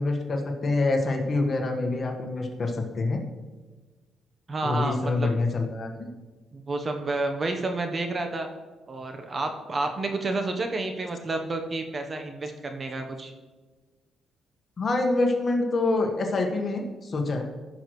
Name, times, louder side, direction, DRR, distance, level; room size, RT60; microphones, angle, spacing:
voice 1, 0.0-3.2 4.6-5.9 14.8-17.4, left 2 dB, 40° left, 3 dB, 1.5 m, -26 dB
voice 2, 4.5-5.3 6.5-8.5 8.9-13.3, right 2 dB, 35° right, 5 dB, 1.0 m, -30 dB
14.5 x 6.4 x 3.2 m, 1.3 s
cardioid pair, 90°, 0 cm